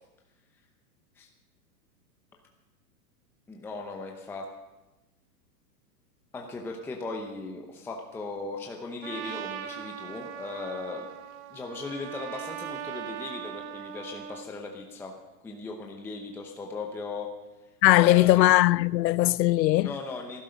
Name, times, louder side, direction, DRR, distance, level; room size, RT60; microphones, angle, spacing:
voice 1, 3.5-4.5 6.3-11.1 11.5-15.1 15.4-17.3 18.0-18.4 19.8-20.4, left 3 dB, 5° left, 0.7 m, -38 dB
Trumpet, 9.0-14.5, right 10 dB, 45° right, 1.1 m, -39 dB
voice 2, 17.8-19.9, left 16 dB, 90° left, 0.6 m, -20 dB
18.5 x 12.0 x 5.2 m
hypercardioid pair, 150°, 49 cm